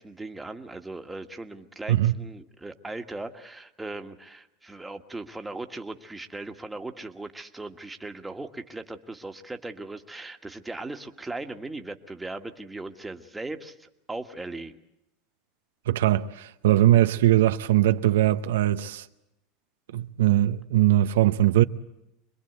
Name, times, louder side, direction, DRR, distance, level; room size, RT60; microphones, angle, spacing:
voice 1, 0.0-14.8, right 2 dB, 10° right, 1.7 m, -38 dB
voice 2, 15.9-19.1 19.9-21.6, right 14 dB, 90° right, 0.9 m, -21 dB
25.5 x 21.5 x 8.2 m
supercardioid pair, 120°, 0 cm